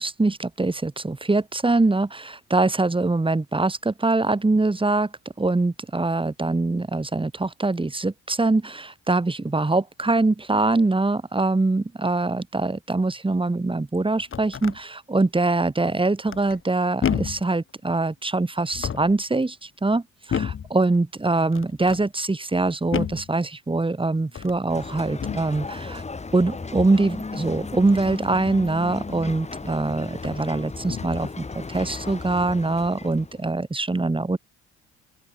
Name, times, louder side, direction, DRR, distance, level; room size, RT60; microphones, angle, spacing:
voice 1, 0.0-5.1 5.4-26.0 26.3-34.4, right 2 dB, 15° right, 3.3 m, -23 dB
sound 1, 14.0-14.8 16.3-16.7 17.0-17.5 18.6-19.2 20.3-20.7 21.5-22.0 22.9-23.3 24.3-24.6 25.2-25.5 26.7-27.1 29.2-29.3 30.1-30.5 30.9-31.3, left 8 dB, 45° left, 1.3 m, -30 dB
sound 2, 24.7-33.5, left 4 dB, 20° left, 1.9 m, -36 dB
open air
cardioid pair, 90°, 30 cm